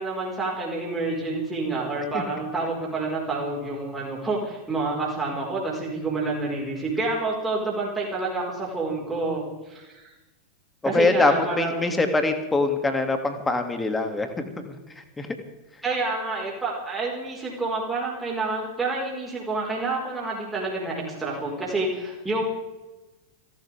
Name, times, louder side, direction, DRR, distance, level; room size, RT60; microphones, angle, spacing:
voice 1, 0.0-10.1 10.8-12.0 15.8-22.4, right 3 dB, 10° right, -3 dB, 4.6 m, -28 dB
voice 2, 10.8-14.4 15.2-15.3, left 3 dB, 10° left, 6 dB, 2.4 m, -23 dB
29.5 x 12.0 x 3.5 m, 1.1 s
figure-of-eight pair, 90°, 0 cm